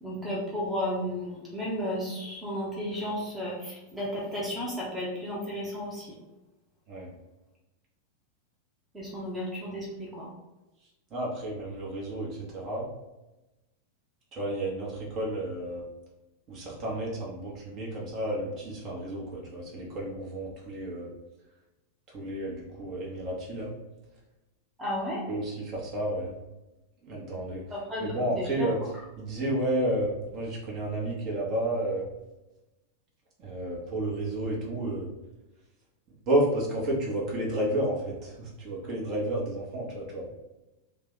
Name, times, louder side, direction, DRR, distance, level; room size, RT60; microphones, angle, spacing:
voice 1, 0.0-6.1 8.9-10.3 24.8-25.2 27.7-28.1 28.6-28.7, equal, 10° right, -4 dB, 0.8 m, -33 dB
voice 2, 11.1-12.9 14.3-15.8 16.5-21.1 22.1-23.7 25.3-26.4 27.0-32.0 33.4-35.1 36.3-40.3, right 1 dB, 35° right, -3 dB, 1.0 m, -31 dB
2.7 x 2.2 x 3.9 m, 1.0 s
figure-of-eight pair, 90°, 0 cm